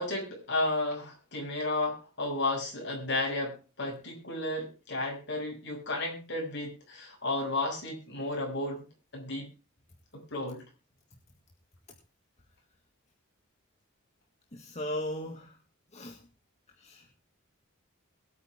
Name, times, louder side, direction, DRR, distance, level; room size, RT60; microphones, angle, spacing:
voice 1, 0.0-8.8 9.1-9.5 10.1-10.6, left 2 dB, 55° left, 6.7 m, -33 dB
voice 2, 14.5-15.6 15.9-16.2 16.8-17.2, left 1 dB, 30° left, 1.8 m, -37 dB
22.0 x 8.8 x 3.7 m
head